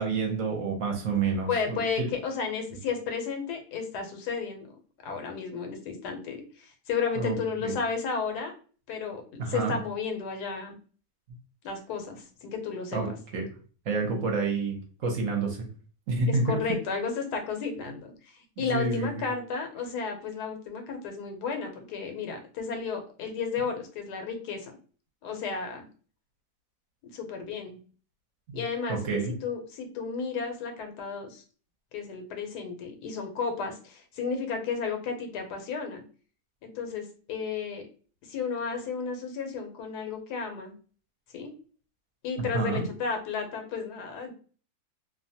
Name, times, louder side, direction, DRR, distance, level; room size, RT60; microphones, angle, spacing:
voice 1, 0.0-1.8 7.2-7.4 7.6-7.7 9.4-9.8 12.9-13.1 13.3-13.5 13.9-15.6 16.1-16.6 18.6-19.3 28.5-28.6 28.9-29.3 42.5-42.8, right 4 dB, 60° right, 2 dB, 1.0 m, -28 dB
voice 2, 1.5-4.7 5.0-8.5 8.9-10.8 11.6-13.0 16.3-24.7 25.2-25.9 27.1-27.8 28.5-29.0 29.3-31.4 31.9-36.0 36.6-37.8 38.3-40.7 41.3-41.5 42.2-44.3, left 5 dB, 90° left, 5 dB, 1.2 m, -33 dB
2.8 x 2.2 x 2.6 m, 0.40 s
omnidirectional pair, 1.7 m